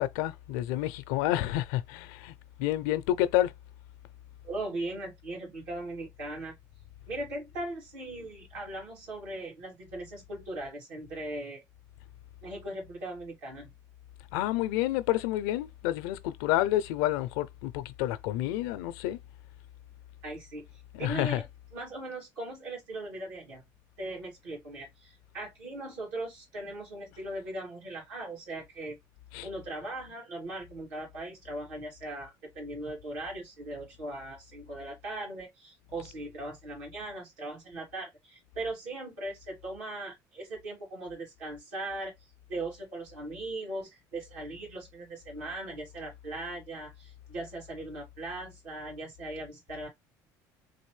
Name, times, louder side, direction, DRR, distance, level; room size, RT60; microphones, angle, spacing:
voice 1, 0.0-2.3 2.6-3.5 14.3-19.2 20.9-21.4 29.3-29.5, left 14 dB, 80° left, 0.5 m, -29 dB
voice 2, 4.4-6.6 7.1-11.6 12.4-13.7 20.2-20.7 21.0-21.5 21.7-23.6 24.0-29.0 29.4-42.1 42.5-49.9, right 2 dB, 85° right, 2.7 m, -39 dB
4.0 x 2.6 x 3.2 m
supercardioid pair, 80°, 9 cm